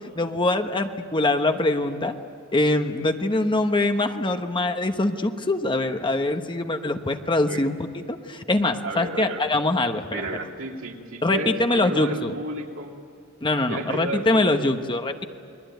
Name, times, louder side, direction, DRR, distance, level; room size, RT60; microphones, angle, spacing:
voice 1, 0.2-2.2 2.5-10.2 11.2-12.3 13.4-15.2, left 2 dB, 25° left, 6 dB, 1.1 m, -23 dB
voice 2, 8.8-9.5 10.1-13.0 13.7-14.6, right 1 dB, 70° right, 0 dB, 3.0 m, -32 dB
29.5 x 22.0 x 9.3 m, 2.6 s
head